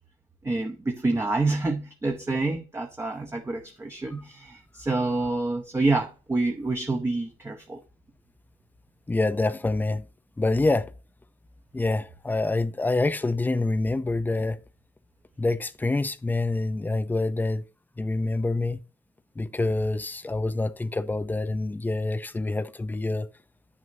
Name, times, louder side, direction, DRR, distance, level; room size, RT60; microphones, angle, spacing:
voice 1, 0.4-7.8, right 2 dB, 15° right, 0.8 m, -27 dB
voice 2, 9.1-10.0 10.4-10.9 11.7-14.6 15.4-17.6 18.0-18.8 19.4-23.3, left 2 dB, 10° left, 0.5 m, -26 dB
9.2 x 6.2 x 2.7 m
cardioid pair, 110°, 17 cm